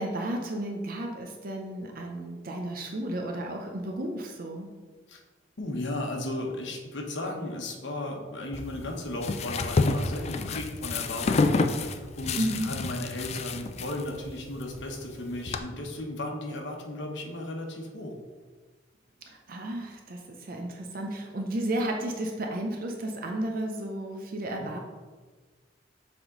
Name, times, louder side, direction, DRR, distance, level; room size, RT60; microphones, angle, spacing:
voice 1, 0.0-4.7 12.4-12.7 19.3-24.8, right 1 dB, 50° right, 2 dB, 0.6 m, -33 dB
voice 2, 5.6-18.1 24.6-24.7, left 1 dB, 80° left, 1 dB, 1.0 m, -35 dB
sound 1, 8.5-15.6, left 3 dB, 35° left, 0.3 m, -29 dB
7.1 x 3.6 x 3.8 m, 1.4 s
head